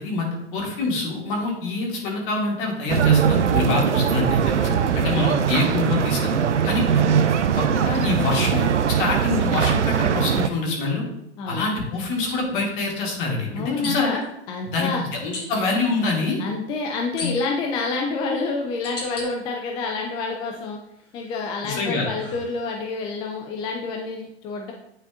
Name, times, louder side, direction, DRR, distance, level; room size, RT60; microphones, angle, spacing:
voice 1, 0.0-6.3 6.6-7.2 7.5-8.7 9.0-11.0 11.5-14.2 14.7-16.4 21.6-22.1, left 3 dB, 50° left, -1 dB, 2.2 m, -25 dB
sound 1, 2.9-10.5, right 8 dB, 90° right, 0.5 m, -21 dB
voice 2, 4.6-5.1 11.4-11.7 13.5-14.2 14.5-15.0 16.4-20.8 21.1-24.7, left 4 dB, 15° left, 1 dB, 0.3 m, -28 dB
sound 2, 12.3-12.4 13.8-14.3 15.3-15.6 17.2-17.7 18.3-19.3 19.8-20.5 21.0-23.0, left 4 dB, 85° left, 1.9 m, -35 dB
9.8 x 4.1 x 2.5 m, 0.78 s
hypercardioid pair, 115°, 34 cm